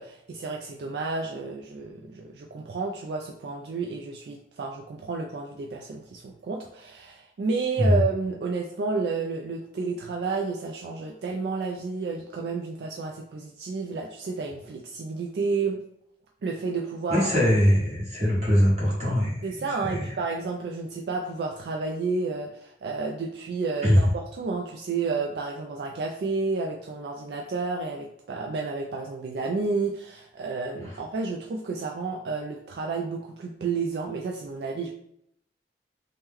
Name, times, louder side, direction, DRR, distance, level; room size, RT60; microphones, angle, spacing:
voice 1, 0.0-15.8 16.4-17.3 19.4-34.9, right 4 dB, 65° right, 0 dB, 0.3 m, -31 dB
voice 2, 17.1-19.4 19.8-20.0 23.8-24.0, equal, 35° right, -6 dB, 1.2 m, -22 dB
3.0 x 2.1 x 3.5 m, 0.72 s
head